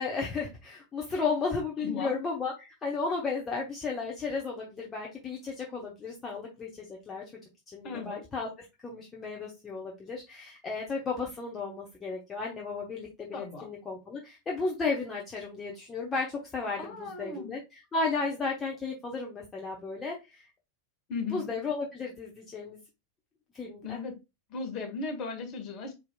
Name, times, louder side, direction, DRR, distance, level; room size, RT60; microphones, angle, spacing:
voice 1, 0.0-7.2 7.7-8.5 8.8-20.5 21.3-22.8 23.5-24.0, left 4 dB, 20° left, -1 dB, 1.0 m, -34 dB
voice 2, 1.8-2.1 7.8-8.2 13.3-13.7 16.8-17.6 21.1-21.5 23.8-24.2 24.5-25.9, left 4 dB, 35° left, 4 dB, 1.6 m, -36 dB
4.9 x 4.5 x 2.3 m, 0.24 s
figure-of-eight pair, 90°, 0 cm